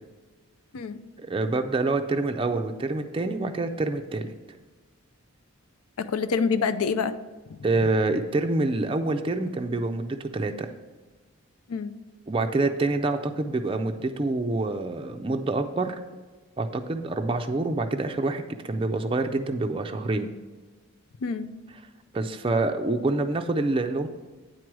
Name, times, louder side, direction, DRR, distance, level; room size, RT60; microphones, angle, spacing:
voice 1, 1.2-4.3 7.6-10.7 12.3-16.0 16.6-20.3 22.1-24.1, right 2 dB, 25° right, 6 dB, 0.4 m, -26 dB
voice 2, 6.0-7.2 11.7-11.9 21.2-21.6, left 5 dB, 85° left, 12 dB, 0.5 m, -26 dB
9.2 x 4.6 x 6.1 m, 1.3 s
head